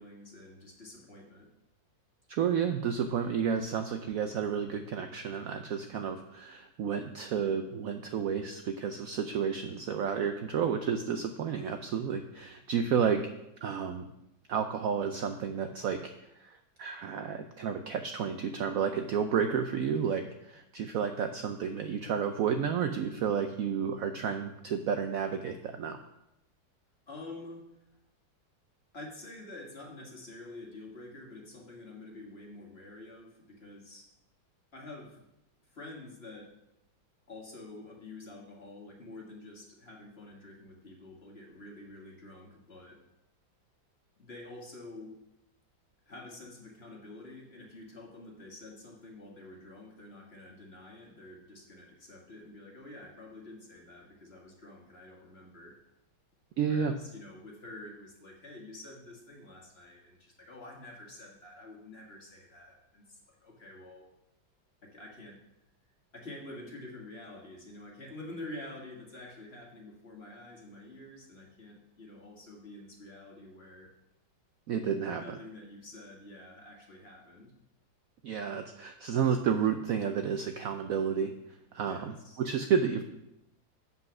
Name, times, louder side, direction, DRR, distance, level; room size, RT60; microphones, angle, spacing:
voice 1, 0.0-1.5 27.1-27.6 28.9-34.1 34.7-35.3 35.6-36.5 37.3-43.0 44.2-45.2 46.1-55.8 56.6-64.1 64.8-65.4 66.1-73.9 75.0-77.5 81.8-82.4, left 2 dB, 35° left, -1 dB, 1.7 m, -48 dB
voice 2, 2.3-13.2 13.6-14.1 14.5-16.0 16.3-26.0 56.6-56.9 74.7-75.4 78.2-81.3 81.7-83.0, right 7 dB, 80° right, 7 dB, 0.7 m, -31 dB
8.0 x 5.6 x 6.0 m, 0.87 s
omnidirectional pair, 2.0 m